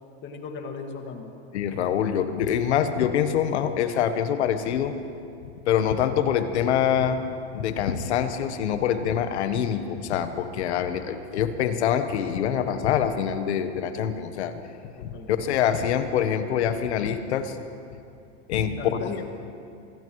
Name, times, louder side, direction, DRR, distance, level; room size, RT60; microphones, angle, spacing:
voice 1, 0.2-1.3 15.0-15.3 18.7-19.2, left 5 dB, 35° left, 3 dB, 2.0 m, -36 dB
voice 2, 1.5-5.0 5.7-7.2 7.5-14.5 15.0-17.6 18.5-19.1, left 9 dB, 85° left, 9 dB, 1.3 m, -25 dB
25.0 x 17.5 x 3.2 m, 2.5 s
supercardioid pair, 130°, 33 cm